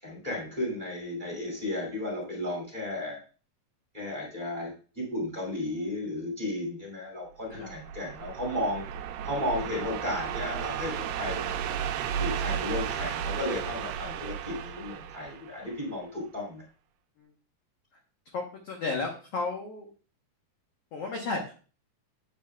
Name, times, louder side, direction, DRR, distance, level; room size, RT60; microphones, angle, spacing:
voice 1, 0.0-3.2 3.9-8.8 9.3-11.6 12.2-16.6, left 1 dB, 15° right, -3 dB, 2.1 m, -34 dB
sound 1, 7.5-16.0, right 8 dB, 80° right, 2.3 m, -34 dB
voice 2, 18.3-19.9 20.9-21.6, left 3 dB, 70° left, 1 dB, 1.5 m, -33 dB
8.5 x 8.5 x 2.3 m, 0.38 s
omnidirectional pair, 4.2 m